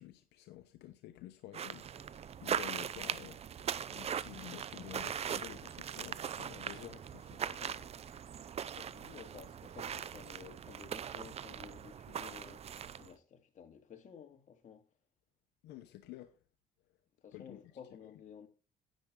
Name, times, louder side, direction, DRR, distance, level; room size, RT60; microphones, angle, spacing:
voice 1, 0.0-3.4 3.9-7.7 15.6-16.3 17.3-17.6 18.0-18.1, left 14 dB, 80° left, 0.9 m, -51 dB
sound 1, 1.5-13.1, right 8 dB, 40° right, 0.6 m, -40 dB
Run, 5.4-10.9, left 1 dB, 5° left, 5.2 m, -72 dB
voice 2, 7.2-7.9 8.7-14.9 17.2-18.5, left 7 dB, 45° left, 2.2 m, -54 dB
10.5 x 9.3 x 3.7 m
cardioid pair, 110°, 17 cm